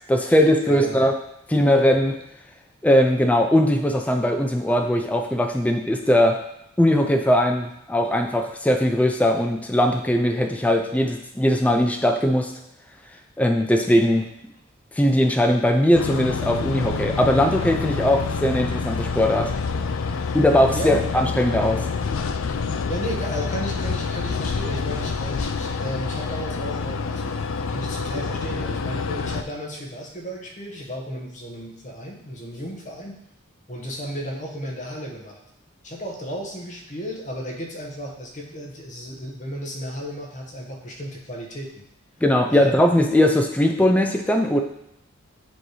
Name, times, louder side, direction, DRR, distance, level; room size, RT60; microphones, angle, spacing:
voice 1, 0.1-1.1 1.5-2.2 2.8-6.4 6.8-12.5 13.4-14.3 15.0-19.5 20.3-21.9 42.2-44.6, left 1 dB, 5° left, 3 dB, 0.4 m, -20 dB
voice 2, 0.6-1.1 20.1-20.4 20.7-21.1 22.9-27.3 27.7-33.2 33.7-35.4 35.8-41.8 42.5-42.7, equal, 35° left, 0 dB, 1.1 m, -34 dB
sound 1, 15.9-29.4, left 5 dB, 70° left, 0.4 m, -27 dB
7.7 x 3.0 x 4.9 m, 0.77 s
head